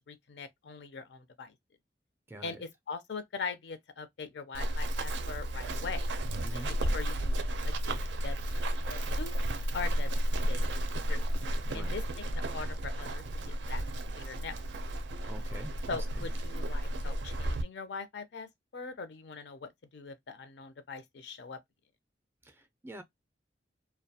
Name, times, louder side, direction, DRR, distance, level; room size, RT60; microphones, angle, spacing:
voice 1, 0.1-1.5 2.4-6.1 6.5-11.3 11.7-14.5 15.9-21.6, left 5 dB, 70° left, 0.5 m, -42 dB
voice 2, 2.3-2.6 6.4-6.7 11.6-11.9 15.3-15.7 16.1-16.2 22.4-23.0, right 1 dB, 15° right, 0.4 m, -45 dB
Run, 4.5-17.6, right 1 dB, 80° right, 0.4 m, -32 dB
2.2 x 2.1 x 2.7 m
head